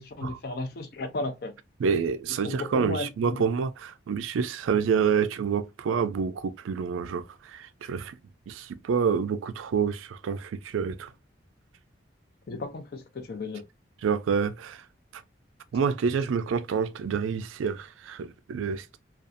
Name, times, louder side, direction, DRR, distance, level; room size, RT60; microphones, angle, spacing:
voice 1, 0.0-1.5 2.4-3.4 12.5-13.6, left 2 dB, 50° left, 0.5 m, -34 dB
voice 2, 1.8-8.2 8.5-11.1 14.0-14.9 15.1-15.2 15.7-19.0, right 6 dB, 90° right, 0.3 m, -28 dB
2.5 x 2.3 x 2.4 m
head